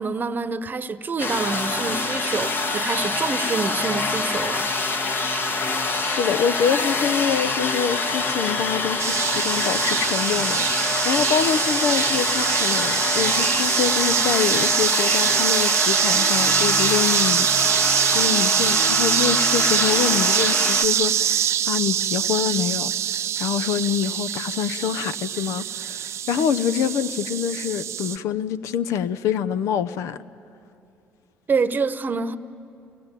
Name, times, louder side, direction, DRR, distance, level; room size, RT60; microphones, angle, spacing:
voice 1, 0.0-4.7 31.5-32.4, right 4 dB, 35° right, 1.0 m, -26 dB
sound 1, 1.2-20.9, left 3 dB, 40° left, 1.8 m, -25 dB
voice 2, 6.0-30.2, left 8 dB, 75° left, 0.7 m, -26 dB
sound 2, 9.0-28.2, right 10 dB, 60° right, 0.6 m, -23 dB
28.5 x 19.0 x 9.1 m
supercardioid pair, 70°, 5 cm